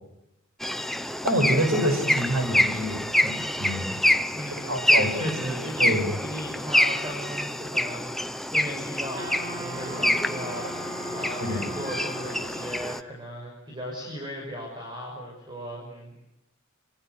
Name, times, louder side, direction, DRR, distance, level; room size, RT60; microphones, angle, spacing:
sound 1, 0.6-13.0, left 1 dB, ahead, 0.9 m, -27 dB
voice 1, 1.2-4.0 4.5-6.2 11.4-11.8, equal, 90° right, 6 dB, 7.6 m, -27 dB
voice 2, 4.3-16.1, equal, 25° right, 0 dB, 6.1 m, -37 dB
Wind instrument woodwind instrument, 9.2-13.0, right 1 dB, 70° right, 6.2 m, -39 dB
27.0 x 26.0 x 8.2 m, 0.89 s
head